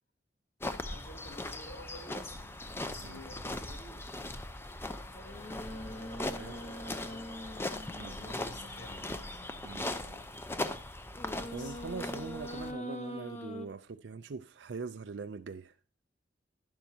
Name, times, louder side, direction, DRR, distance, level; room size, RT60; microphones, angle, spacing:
sound 1, 0.6-12.7, left 1 dB, 15° left, 0.6 m, -40 dB
voice 1, 0.9-2.5 2.8-4.1 5.1-9.4 10.0-10.3 11.5-11.8, left 1 dB, 85° left, 3.2 m, -52 dB
sound 2, 5.1-9.9 11.1-13.7, left 1 dB, 40° left, 1.6 m, -44 dB
voice 2, 8.0-8.3 9.6-9.9 11.5-15.7, right 4 dB, 75° right, 0.5 m, -42 dB
11.5 x 10.5 x 2.8 m
head